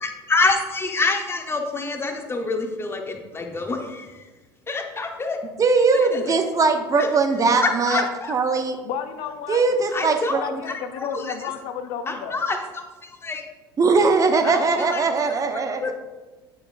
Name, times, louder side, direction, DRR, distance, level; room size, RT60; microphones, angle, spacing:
voice 1, 0.0-4.3 4.7-5.4 5.9-6.3 7.0-7.1 7.5-8.3 9.9-11.5 12.1-13.4 14.4-15.3 15.8-16.0, left 3 dB, 20° left, 4 dB, 1.1 m, -27 dB
voice 2, 5.6-8.8 9.5-10.6 13.8-15.8, right 4 dB, 30° right, 6 dB, 0.7 m, -20 dB
voice 3, 8.9-9.6 10.4-10.5 10.8-12.4, left 8 dB, 55° left, 8 dB, 0.5 m, -31 dB
8.7 x 7.0 x 2.5 m, 1.2 s
figure-of-eight pair, 65°, 12 cm